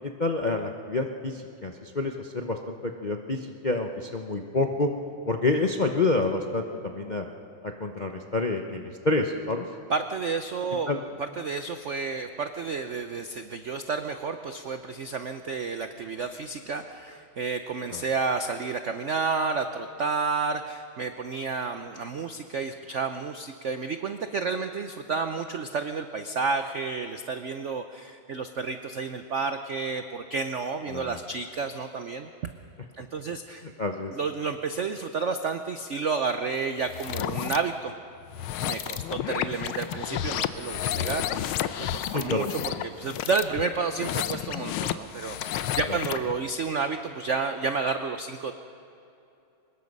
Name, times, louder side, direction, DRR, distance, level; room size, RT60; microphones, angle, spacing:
voice 1, 0.0-4.9 5.3-7.3 7.6-9.6 10.9-11.0 17.9-18.0 30.9-31.2 33.8-34.1 42.1-42.8 45.9-46.0, left 2 dB, 45° left, 3 dB, 0.6 m, -28 dB
voice 2, 9.9-10.9 11.2-32.5 33.0-33.6 34.1-37.9 38.6-41.5 41.9-48.5, right 4 dB, 75° right, 8 dB, 0.6 m, -31 dB
sound 1, 36.9-37.6 38.3-46.3, left 11 dB, 85° left, 1.6 m, -31 dB
24.5 x 20.5 x 5.4 m, 2.8 s
omnidirectional pair, 2.3 m